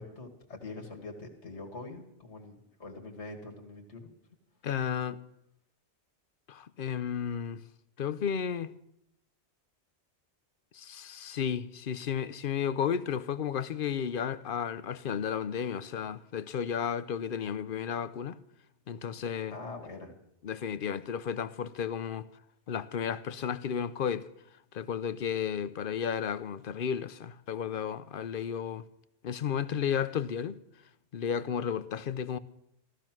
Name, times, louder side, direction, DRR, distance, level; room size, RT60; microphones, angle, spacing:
voice 1, 0.0-4.1 19.5-20.1, left 3 dB, 75° left, 2.3 m, -44 dB
voice 2, 4.6-5.2 6.5-7.6 8.0-8.7 10.7-18.4 18.9-19.6 20.4-22.2 22.7-24.3 24.7-28.8 29.2-30.6 31.1-32.4, left 8 dB, 55° left, 0.8 m, -33 dB
14.5 x 14.5 x 6.0 m
omnidirectional pair, 1.2 m